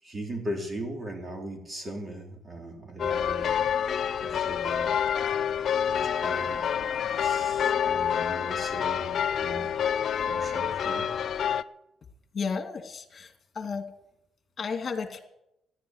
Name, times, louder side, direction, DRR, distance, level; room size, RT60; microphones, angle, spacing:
voice 1, 0.0-3.7 4.2-4.9 5.9-9.8 10.3-11.1, right 1 dB, 30° right, 1 dB, 4.2 m, -39 dB
sound 1, 3.0-11.6, left 8 dB, 60° left, 0.6 m, -27 dB
voice 2, 12.3-13.8 14.6-15.2, left 5 dB, 45° left, 5 dB, 2.5 m, -33 dB
14.5 x 11.0 x 8.2 m, 0.84 s
cardioid pair, 90°, 0 cm